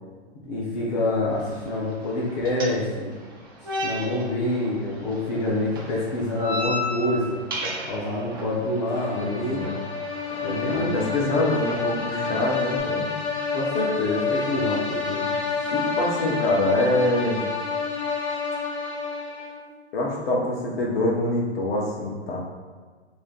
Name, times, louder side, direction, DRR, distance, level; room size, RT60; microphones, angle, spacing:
voice 1, 0.4-3.1 3.8-7.4 7.9-9.7 10.4-11.0 13.5-15.3, left 1 dB, 35° left, -7 dB, 0.8 m, -26 dB
sound 1, 1.3-12.8, left 1 dB, 20° right, 0.3 m, -36 dB
sound 2, 8.7-19.7, left 5 dB, 75° left, 1.3 m, -29 dB
voice 2, 9.2-9.8 10.7-13.1 15.7-17.5 19.9-22.4, left 1 dB, 55° left, -3 dB, 1.2 m, -25 dB
3.2 x 2.7 x 3.9 m, 1.5 s
hypercardioid pair, 150°, 35 cm